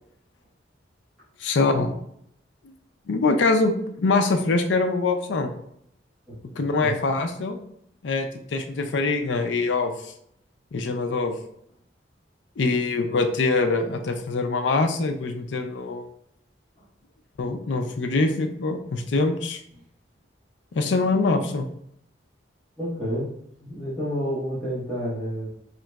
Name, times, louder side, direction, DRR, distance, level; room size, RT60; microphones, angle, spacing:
voice 1, 1.4-2.0 3.1-5.5 6.6-7.6 8.0-9.9 10.7-11.3 12.6-16.1 17.4-19.6 20.7-21.7, left 3 dB, 70° left, 6 dB, 0.4 m, -24 dB
voice 2, 6.3-6.9 22.8-23.3 23.6-25.5, equal, ahead, -15 dB, 1.3 m, -30 dB
3.7 x 2.9 x 2.2 m, 0.72 s
head